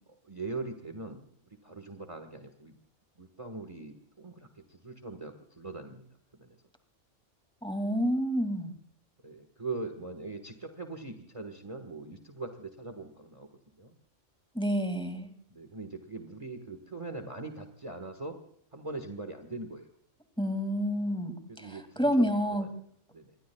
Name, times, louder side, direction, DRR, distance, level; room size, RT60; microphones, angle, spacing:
voice 1, 0.1-2.8 3.1-6.1 6.4-6.6 9.2-14.0 15.5-18.4 18.7-19.9 21.5-22.7 23.1-23.4, right 3 dB, 25° right, 6 dB, 1.5 m, -41 dB
voice 2, 7.6-8.7 14.5-15.3 20.4-22.7, equal, 5° left, 7 dB, 2.3 m, -29 dB
26.5 x 22.5 x 2.3 m, 0.65 s
omnidirectional pair, 1.3 m